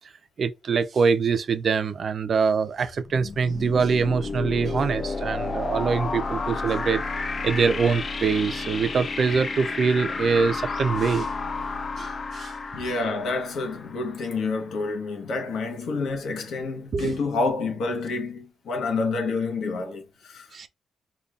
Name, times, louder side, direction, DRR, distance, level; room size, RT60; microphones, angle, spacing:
voice 1, 0.4-7.0 7.4-11.3 12.0-12.5 16.9-17.2 20.5-20.7, right 5 dB, 40° right, 0.4 m, -24 dB
sound 1, 2.8-14.5, left 3 dB, 30° left, 0.4 m, -31 dB
voice 2, 12.7-20.5, left 3 dB, 75° left, 0.9 m, -28 dB
5.1 x 2.2 x 2.4 m
wide cardioid pair, 165°, 0 cm